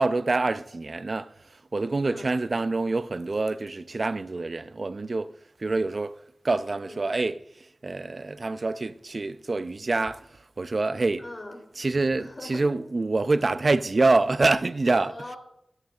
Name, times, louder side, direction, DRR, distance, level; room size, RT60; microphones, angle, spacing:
voice 1, 0.0-1.3 1.7-5.3 5.6-6.2 6.4-7.4 7.8-10.3 10.6-11.2 11.8-15.1, right 3 dB, 50° right, 0.4 m, -26 dB
voice 2, 2.0-2.4 6.8-7.0 11.2-11.7 12.2-12.8 15.0-15.4, left 1 dB, 35° left, 3.0 m, -41 dB
19.5 x 6.6 x 2.4 m
wide cardioid pair, 80°, 0 cm